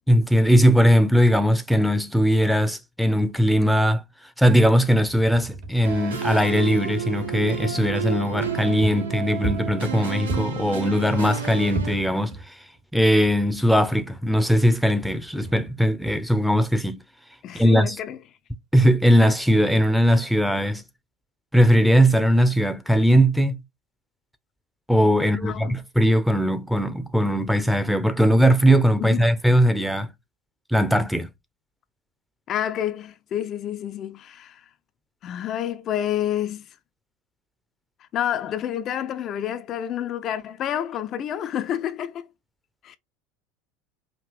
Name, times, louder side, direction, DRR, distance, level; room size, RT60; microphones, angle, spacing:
voice 1, 0.1-4.0 4.4-12.6 12.9-17.0 17.5-18.0 18.7-20.8 21.5-23.6 24.9-30.1 30.7-31.3, equal, ahead, 0.8 m, -19 dB
sound 1, 5.1-8.0 8.4-8.5 8.8-10.7 11.1-12.8 13.1-14.6 15.2-16.4, right 2 dB, 60° right, 2.8 m, -35 dB
sound 2, 5.8-12.0, right 6 dB, 85° right, 1.2 m, -30 dB
voice 2, 17.4-18.2 25.2-25.7 29.0-29.3 32.5-34.6 35.2-36.7 38.1-42.2 42.8-43.0, left 10 dB, 45° left, 0.6 m, -29 dB
5.0 x 2.8 x 3.3 m
hypercardioid pair, 80°, 0 cm